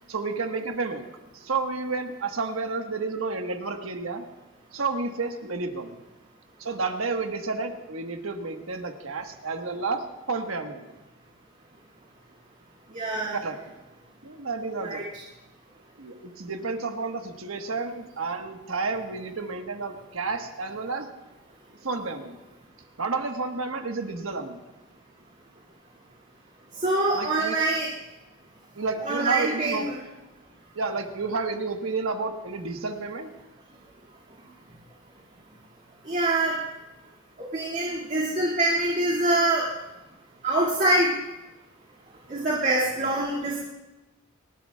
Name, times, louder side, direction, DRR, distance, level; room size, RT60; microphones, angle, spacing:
voice 1, 0.1-1.1 1.3-4.2 4.7-6.0 6.6-10.8 13.3-13.7 14.2-15.0 16.0-21.1 21.8-22.4 23.0-24.6 27.1-27.6 28.7-29.9 30.7-33.3, right 4 dB, 75° right, 5 dB, 1.4 m, -31 dB
voice 2, 12.9-13.4 14.8-15.0 26.8-27.9 29.0-29.9 36.1-36.6 37.5-39.7 40.4-41.1 42.3-43.6, right 2 dB, 40° right, -6 dB, 2.3 m, -24 dB
28.5 x 12.5 x 2.4 m, 1.1 s
head